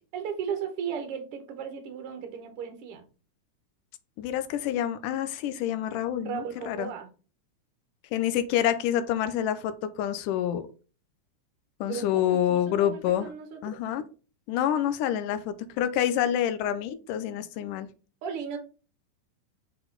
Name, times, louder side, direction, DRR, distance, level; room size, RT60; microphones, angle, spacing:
voice 1, 0.1-3.0 6.3-7.1 11.8-13.6 18.2-18.6, right 7 dB, 55° right, 1.7 m, -35 dB
voice 2, 4.2-6.9 8.1-10.6 11.8-13.3 13.6-14.0 14.5-17.9, left 10 dB, 85° left, 2.2 m, -27 dB
6.9 x 4.0 x 3.9 m
omnidirectional pair, 3.7 m